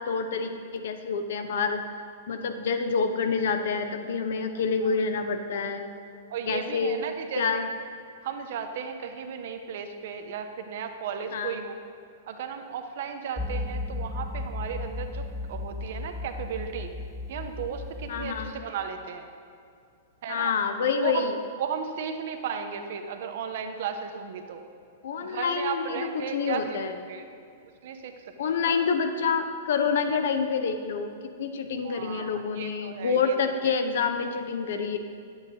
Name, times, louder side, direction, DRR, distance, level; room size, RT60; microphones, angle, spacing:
voice 1, 0.0-1.8 2.3-5.9 6.5-7.0 7.4-7.7 11.3-11.6 18.1-18.5 20.3-21.4 25.0-27.0 28.4-35.0, left 5 dB, 60° left, 7 dB, 0.6 m, -27 dB
voice 2, 6.3-7.6 8.2-11.8 12.3-16.9 17.3-19.3 20.2-20.5 21.0-21.3 21.6-24.6 25.2-26.7 27.1-27.2 27.8-28.3 28.7-28.8 31.8-33.4, right 7 dB, 55° right, 6 dB, 0.7 m, -35 dB
sound 1, 13.4-18.5, left 2 dB, 10° left, 0.4 m, -35 dB
9.0 x 7.9 x 2.8 m, 2.4 s
figure-of-eight pair, 105°, 0 cm